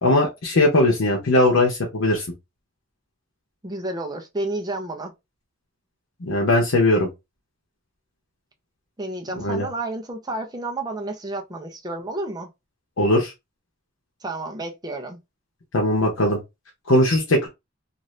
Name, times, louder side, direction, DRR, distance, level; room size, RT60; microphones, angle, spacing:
voice 1, 0.0-2.2 6.2-7.1 9.4-9.7 13.0-13.3 15.7-16.4 16.9-17.5, left 1 dB, 90° left, 0.8 m, -19 dB
voice 2, 3.6-5.1 9.0-12.5 14.2-15.2, right 2 dB, 20° right, 0.6 m, -31 dB
2.6 x 2.5 x 3.2 m
head